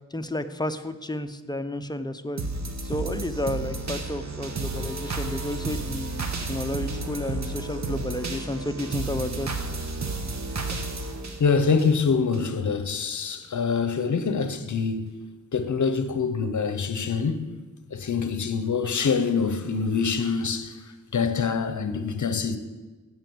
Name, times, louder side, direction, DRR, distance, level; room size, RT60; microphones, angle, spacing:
voice 1, 0.1-2.4 2.8-9.5, left 1 dB, 10° left, 0.7 m, -31 dB
sound 1, 2.4-12.4 12.9-13.0, right 3 dB, 55° right, 1.4 m, -32 dB
voice 2, 11.4-15.2 15.5-17.6 17.9-22.6, left 5 dB, 60° left, 0.9 m, -25 dB
16.5 x 5.9 x 7.8 m
wide cardioid pair, 100°, 33 cm